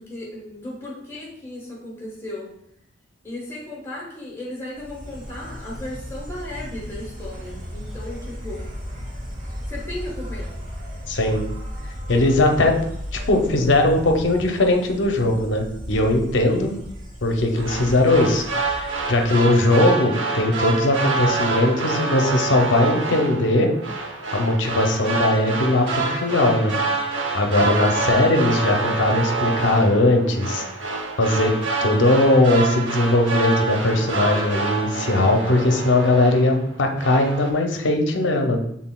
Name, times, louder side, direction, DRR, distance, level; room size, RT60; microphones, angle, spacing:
voice 1, 0.0-2.5 3.2-8.7 9.7-10.5, left 1 dB, 15° left, -4 dB, 1.2 m, -35 dB
Insect, 4.7-19.8, equal, 40° right, 1.0 m, -35 dB
voice 2, 11.1-11.4 12.1-12.8 13.1-16.7 17.2-23.7 24.3-26.7 27.3-30.6 31.2-31.5 31.8-38.6, left 2 dB, 65° left, 4 dB, 0.6 m, -19 dB
sound 1, 17.6-36.7 37.0-37.5, right 3 dB, 70° right, 0.7 m, -27 dB
6.1 x 3.7 x 2.2 m, 0.74 s
head